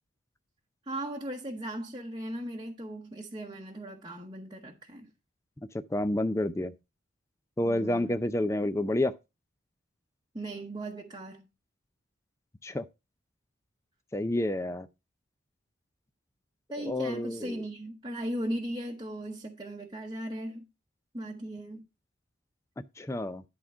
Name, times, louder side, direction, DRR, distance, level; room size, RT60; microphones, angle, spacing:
voice 1, 0.9-5.1 7.6-8.2 10.3-11.5 16.7-20.6 21.1-21.8, right 1 dB, 20° right, 0.9 m, -37 dB
voice 2, 5.9-6.7 7.6-9.1 12.6-12.8 14.1-14.9 16.8-17.6 23.0-23.4, left 1 dB, 15° left, 0.4 m, -29 dB
11.0 x 3.7 x 5.4 m
head